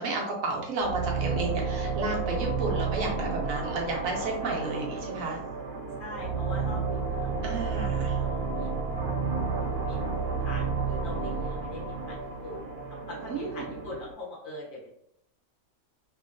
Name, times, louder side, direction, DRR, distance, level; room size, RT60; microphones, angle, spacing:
voice 1, 0.0-5.4 7.4-8.2 13.3-13.7, right 3 dB, 70° right, -1 dB, 1.1 m, -32 dB
sound 1, 0.8-14.1, right 4 dB, 90° right, 1.2 m, -31 dB
voice 2, 4.4-4.8 6.0-8.8 9.9-12.6 12.9-14.9, left 1 dB, 40° left, -4 dB, 1.1 m, -43 dB
3.0 x 2.8 x 2.5 m, 0.73 s
omnidirectional pair, 1.6 m